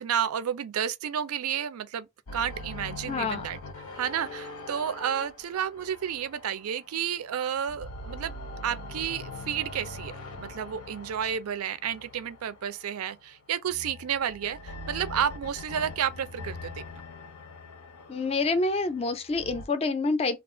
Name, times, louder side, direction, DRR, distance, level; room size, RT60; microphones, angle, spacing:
voice 1, 0.0-3.6 3.9-8.3 8.6-10.1 10.4-16.8, right 9 dB, 85° right, 0.4 m, -31 dB
sound 1, 2.3-7.2 7.6-12.9 13.7-19.7, left 2 dB, 85° left, 0.6 m, -42 dB
voice 2, 3.1-3.5 18.1-20.4, left 3 dB, 25° left, 0.3 m, -27 dB
2.4 x 2.3 x 3.6 m
head